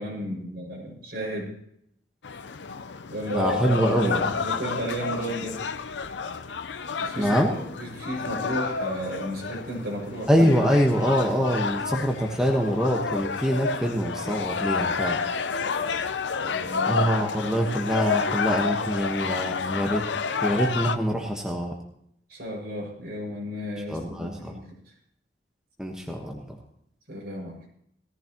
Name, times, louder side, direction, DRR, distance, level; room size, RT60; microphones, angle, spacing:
voice 1, 0.0-1.5 3.1-5.6 7.0-10.4 16.4-17.1 22.3-24.8 27.1-27.6, equal, 60° right, -2 dB, 6.1 m, -33 dB
sound 1, 2.2-21.0, left 5 dB, 85° left, 0.6 m, -30 dB
voice 2, 3.3-4.2 7.2-7.5 10.3-15.2 16.8-20.0 20.4-21.8 23.9-24.6 25.8-26.6, equal, 5° right, 0 dB, 1.3 m, -24 dB
18.0 x 14.5 x 3.0 m, 0.71 s
head